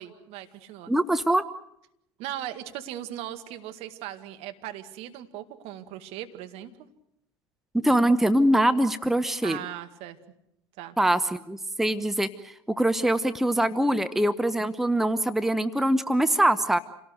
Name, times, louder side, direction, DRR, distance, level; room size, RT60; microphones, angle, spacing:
voice 1, 0.0-0.9 2.2-6.7 9.4-10.2 10.8-11.0, right 12 dB, 55° right, 7 dB, 2.1 m, -38 dB
voice 2, 0.9-1.4 7.7-9.6 11.0-16.8, right 1 dB, 5° right, 12 dB, 0.9 m, -23 dB
27.5 x 18.0 x 8.0 m, 0.79 s
figure-of-eight pair, 70°, 13 cm